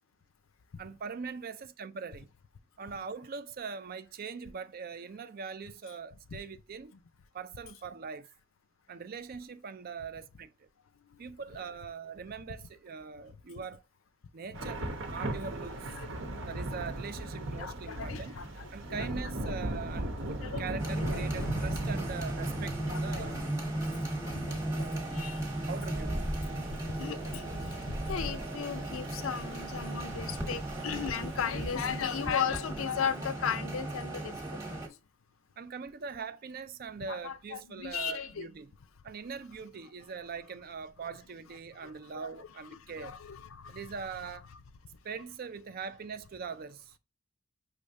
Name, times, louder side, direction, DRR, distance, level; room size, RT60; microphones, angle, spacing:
voice 1, 0.8-2.3 2.8-6.9 7.3-8.3 8.9-10.7 11.2-13.8 14.3-16.0 16.5-18.4 18.7-23.4 25.7-26.3 35.6-38.7 39.0-43.2 43.7-44.4 45.0-47.0, right 5 dB, 45° right, 0.4 m, -42 dB
Thunder / Rain, 14.5-32.3, right 1 dB, 65° right, 0.9 m, -39 dB
voice 2, 15.9-16.6 17.5-19.1 19.5-19.6 20.4-20.6 21.1-21.5 22.8-23.4 24.1-25.4 26.5-34.4 34.7-34.8 37.1-38.5 41.8-43.9, left 7 dB, 75° left, 0.5 m, -37 dB
sound 1, 20.8-34.9, right 1 dB, 15° right, 1.0 m, -36 dB
5.5 x 3.3 x 2.6 m
head